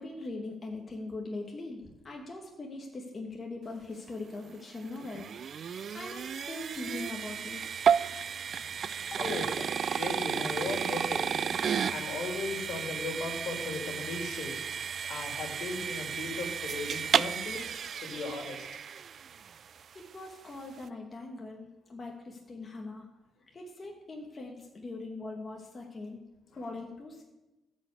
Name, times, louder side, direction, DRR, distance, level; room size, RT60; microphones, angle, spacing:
voice 1, 0.0-7.6 19.9-23.1 23.5-26.2 26.6-27.2, left 2 dB, 35° left, 0 dB, 1.5 m, -41 dB
sound 1, 4.4-19.6, right 7 dB, 55° right, 0.4 m, -33 dB
voice 2, 7.8-17.6 18.0-18.6 26.5-26.6, left 3 dB, 65° left, 2 dB, 2.6 m, -38 dB
13.0 x 5.2 x 8.2 m, 1.1 s
cardioid pair, 90°, 0 cm